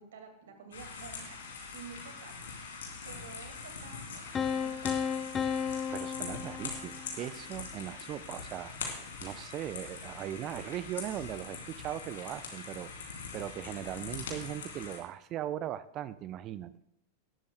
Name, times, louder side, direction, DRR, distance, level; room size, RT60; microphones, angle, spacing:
voice 1, 0.0-1.4 1.7-2.5 3.0-5.7, right 5 dB, 60° right, 5 dB, 2.0 m, -51 dB
sound 1, 0.7-15.0, left 5 dB, 65° left, 3.0 m, -43 dB
Piano, 4.3-7.2, left 7 dB, 20° left, 0.5 m, -33 dB
voice 2, 5.9-8.9 9.2-16.7, right 12 dB, 35° right, 17 dB, 0.5 m, -39 dB
18.5 x 12.5 x 2.2 m, 0.77 s
figure-of-eight pair, 90°, 0 cm